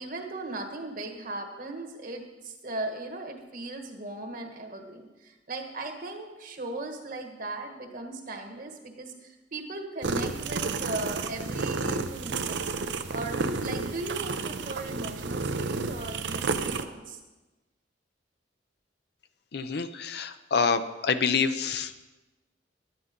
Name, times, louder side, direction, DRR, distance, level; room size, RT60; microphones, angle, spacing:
voice 1, 0.0-12.6 13.1-17.2, right 2 dB, 50° right, 4 dB, 1.4 m, -38 dB
sound 1, 10.0-16.8, right 4 dB, 75° right, 0.7 m, -31 dB
voice 2, 19.5-21.9, left 5 dB, 65° left, 11 dB, 0.6 m, -27 dB
11.0 x 9.4 x 5.2 m, 1.1 s
head